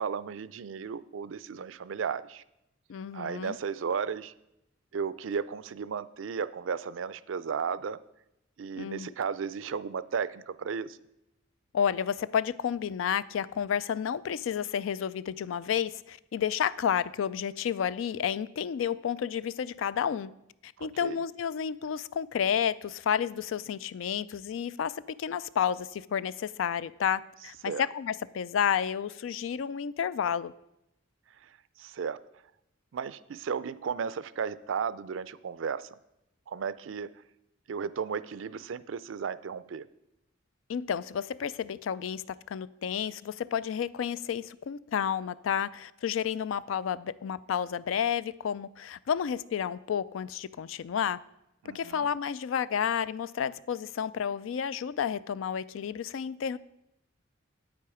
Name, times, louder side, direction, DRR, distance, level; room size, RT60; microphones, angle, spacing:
voice 1, 0.0-2.4 3.1-4.3 4.9-8.0 8.6-11.0 20.8-21.2 27.7-27.8 31.4-31.5 31.8-32.2 32.9-35.9 36.5-37.1 37.7-39.8 51.6-52.1, right 6 dB, 75° right, 0.4 m, -34 dB
voice 2, 2.9-3.6 8.8-9.1 11.7-20.3 20.6-30.5 40.7-51.2 51.7-56.6, left 8 dB, 80° left, 0.3 m, -31 dB
8.6 x 8.5 x 4.9 m
head